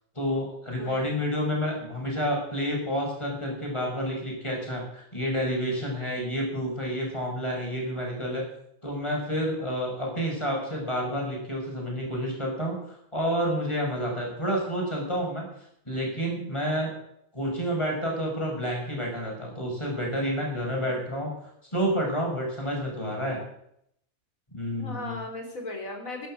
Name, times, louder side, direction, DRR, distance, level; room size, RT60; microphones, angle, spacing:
voice 1, 0.1-8.4 8.8-15.5 15.8-16.9 17.3-21.3 21.7-23.4 24.5-25.2, equal, 20° left, -1 dB, 6.2 m, -29 dB
voice 2, 0.8-1.1 20.8-21.0 24.8-26.3, left 2 dB, 75° left, 3 dB, 4.0 m, -37 dB
12.5 x 11.5 x 7.7 m, 0.73 s
omnidirectional pair, 1.4 m